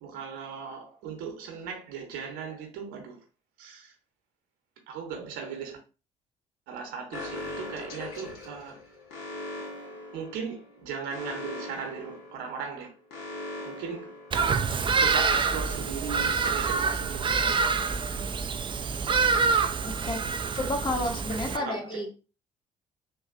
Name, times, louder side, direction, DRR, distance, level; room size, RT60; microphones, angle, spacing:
voice 1, 0.0-3.2 3.6-3.9 4.9-5.8 6.7-8.8 10.1-12.9 13.6-18.2 21.5-22.1, right 6 dB, 70° right, 1.0 m, -38 dB
Alarm, 7.1-14.9, left 2 dB, 70° left, 0.8 m, -40 dB
Bird vocalization bird call bird song, 14.3-21.6, right 5 dB, 30° right, 0.4 m, -26 dB
voice 2, 19.8-22.1, left 1 dB, 30° left, 1.1 m, -31 dB
3.9 x 2.5 x 2.5 m
hypercardioid pair, 50°, 17 cm